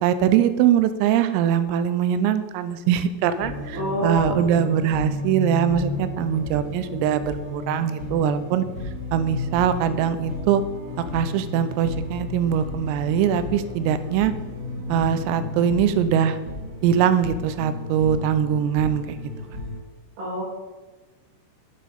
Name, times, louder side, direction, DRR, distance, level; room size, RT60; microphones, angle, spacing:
voice 1, 0.0-3.8 4.0-8.6 9.1-10.6 11.1-14.3 14.9-16.4 16.8-19.3, right 9 dB, 90° right, 12 dB, 3.3 m, -22 dB
sound 1, 3.4-19.8, left 2 dB, 50° right, 1.3 m, -33 dB
voice 2, 3.7-4.4 20.2-20.4, equal, 70° right, -6 dB, 5.4 m, -27 dB
8.3 x 7.5 x 5.3 m, 1.2 s
omnidirectional pair, 5.8 m